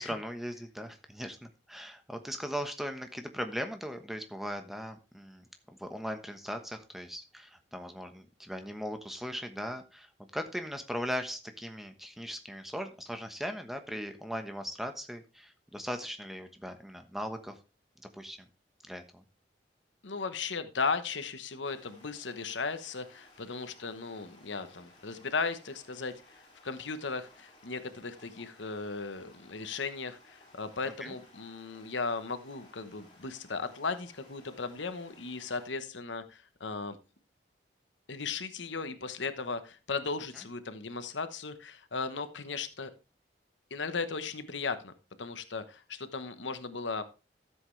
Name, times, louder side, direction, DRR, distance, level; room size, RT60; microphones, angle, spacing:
voice 1, 0.0-17.6 18.0-18.5 18.9-19.2 31.0-31.1 40.3-40.4, equal, ahead, 6 dB, 1.1 m, -39 dB
voice 2, 20.0-26.2 26.6-37.0 38.1-42.9 43.7-44.9 45.2-47.0, left 4 dB, 90° left, 10 dB, 1.1 m, -36 dB
sound 1, 21.6-35.7, left 1 dB, 30° left, 3.9 m, -59 dB
13.0 x 7.7 x 3.3 m, 0.30 s
head